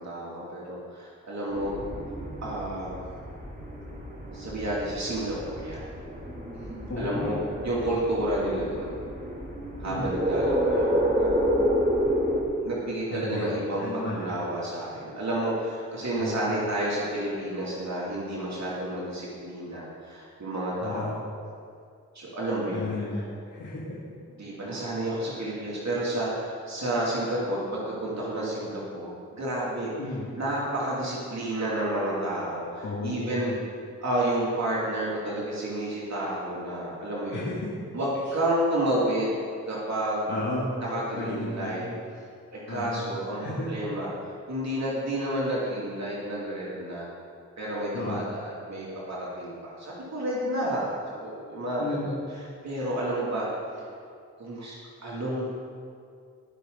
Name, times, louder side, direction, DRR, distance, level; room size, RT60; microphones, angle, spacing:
voice 1, 0.0-1.8 2.4-3.0 4.3-5.9 7.0-7.4 7.6-9.0 9.8-11.3 12.6-21.1 22.1-22.9 24.4-29.9 30.4-33.5 34.0-37.5 37.9-40.3 40.8-41.8 42.5-44.1 44.5-47.1 47.6-53.5 54.4-54.7 55.0-55.4, right 1 dB, 55° right, -6 dB, 2.8 m, -30 dB
sound 1, 1.5-12.4, equal, 30° right, 2.6 m, -29 dB
voice 2, 6.9-7.4 9.9-10.1 13.1-14.3 16.2-16.7 20.8-21.1 22.7-23.8 30.0-30.2 32.8-33.6 37.3-37.7 40.3-40.7 41.2-41.9 42.7-43.1 43.4-43.7 47.9-48.3 51.8-52.1, left 2 dB, 60° left, -8 dB, 2.5 m, -33 dB
19.5 x 6.6 x 4.0 m, 2.3 s
cardioid pair, 50°, 32 cm